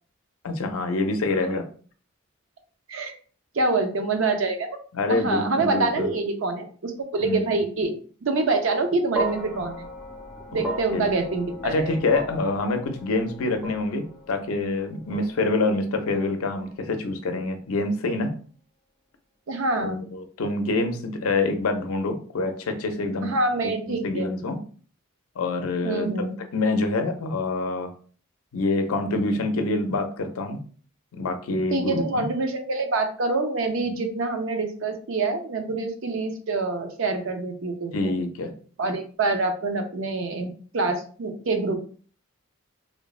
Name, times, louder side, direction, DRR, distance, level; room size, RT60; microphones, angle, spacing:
voice 1, 0.4-1.7 4.9-6.1 7.2-7.4 10.5-10.7 10.9-11.0 11.6-18.3 19.8-23.3 23.9-24.6 25.4-26.1 26.5-27.9 28.5-30.6 31.1-32.3 33.9-34.0 37.9-38.5, left 2 dB, 85° left, 5 dB, 0.5 m, -26 dB
voice 2, 3.5-4.8 5.1-7.9 8.2-9.9 10.5-12.0 19.5-20.1 23.2-24.3 25.8-26.3 31.7-38.1 38.8-41.8, right 3 dB, 65° right, 5 dB, 0.5 m, -26 dB
sound 1, 9.1-17.5, right 2 dB, 5° right, 0.5 m, -37 dB
3.1 x 2.0 x 2.3 m, 0.42 s
head